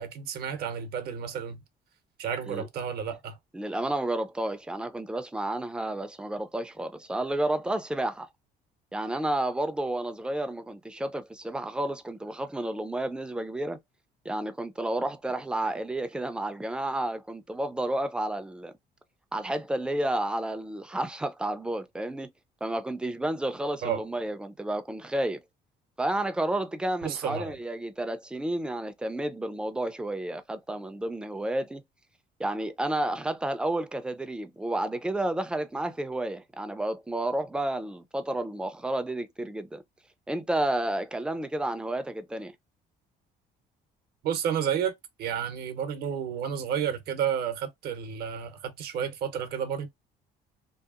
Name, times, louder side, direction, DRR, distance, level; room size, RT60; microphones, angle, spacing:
voice 1, 0.0-1.6 2.2-3.4 23.8-24.0 27.0-27.5 44.2-44.9 45.2-49.9, right 8 dB, 65° right, 0.7 m, -31 dB
voice 2, 3.5-8.3 8.9-13.8 14.3-18.7 19.3-22.3 22.6-25.4 26.0-31.8 32.4-39.8 40.3-42.5, right 1 dB, 5° right, 0.3 m, -31 dB
2.8 x 2.4 x 2.4 m
cardioid pair, 110°, 17 cm